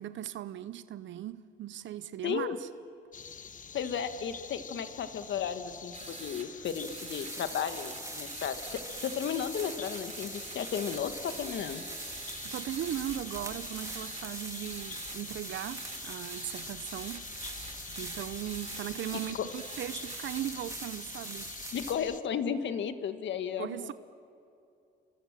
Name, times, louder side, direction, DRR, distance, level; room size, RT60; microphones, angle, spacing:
voice 1, 0.0-2.7 12.4-17.3 18.0-21.5 23.6-23.9, right 12 dB, 70° right, 0.7 m, -38 dB
voice 2, 2.2-2.6 3.7-8.6 9.0-11.8 19.4-19.5 21.7-23.9, left 8 dB, 65° left, 1.6 m, -34 dB
sound 1, 3.1-22.2, left 6 dB, 40° left, 1.1 m, -46 dB
sound 2, 5.9-6.5 6.9-7.3 7.7-13.2 13.6-14.2 14.6-15.2 15.5-20.4, right 4 dB, 35° right, 4.4 m, -47 dB
sound 3, 6.6-22.0, right 2 dB, 15° right, 3.1 m, -43 dB
29.0 x 25.0 x 7.4 m
cardioid pair, 90°, 20 cm